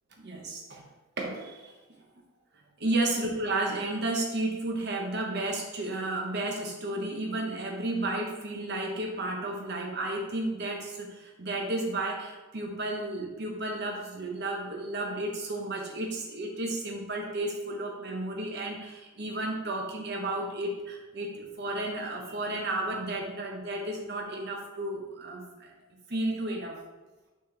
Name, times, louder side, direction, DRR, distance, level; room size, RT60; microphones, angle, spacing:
voice 1, 0.2-0.8 1.2-1.7 2.8-25.7 26.1-26.8, right 2 dB, 50° right, 0 dB, 1.1 m, -32 dB
6.6 x 4.4 x 3.4 m, 1.1 s
head